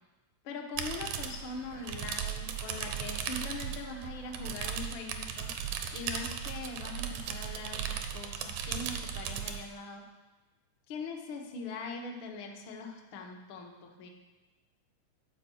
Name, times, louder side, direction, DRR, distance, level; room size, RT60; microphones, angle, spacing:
voice 1, 0.4-5.5 5.9-10.0 10.9-14.1, left 4 dB, 75° left, 2 dB, 1.1 m, -42 dB
sound 1, 0.8-9.7, right 8 dB, 80° right, 2.1 m, -37 dB
10.5 x 4.5 x 6.9 m, 1.2 s
omnidirectional pair, 3.7 m